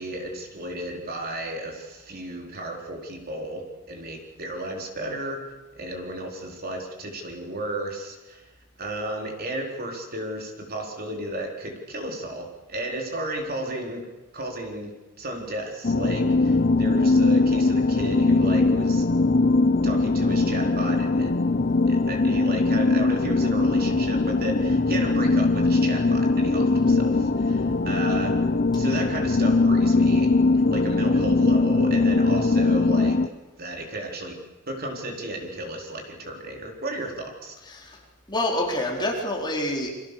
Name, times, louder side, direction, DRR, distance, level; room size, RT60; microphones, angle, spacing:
voice 1, 0.0-8.5 8.8-14.1 14.3-19.0 19.8-21.4 21.9-28.4 28.7-30.3 30.7-33.2 33.6-34.4 34.7-37.6, right 1 dB, 45° right, 2 dB, 4.1 m, -33 dB
sound 1, 15.8-33.3, left 3 dB, 40° left, 0.8 m, -21 dB
voice 2, 37.7-38.0 38.3-39.9, left 1 dB, 20° left, -1 dB, 4.2 m, -27 dB
28.5 x 25.0 x 6.8 m, 1.1 s
head